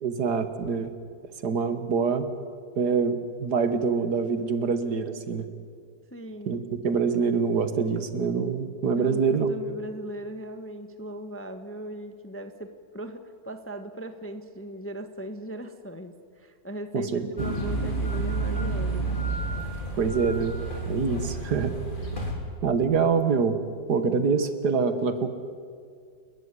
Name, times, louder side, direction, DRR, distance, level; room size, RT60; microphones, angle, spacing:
voice 1, 0.0-0.9 1.4-2.3 2.8-5.5 6.5-9.5 16.9-17.6 20.0-20.6 20.9-21.7 22.6-23.6 23.9-25.3, right 5 dB, 60° right, 9 dB, 1.9 m, -25 dB
voice 2, 6.1-6.6 9.0-12.7 12.9-19.1 19.4-19.5, right 1 dB, 10° left, 7 dB, 0.9 m, -38 dB
sound 1, 17.4-22.3, right 2 dB, 25° left, 3.6 m, -30 dB
30.0 x 13.5 x 9.7 m, 2.1 s
omnidirectional pair, 2.0 m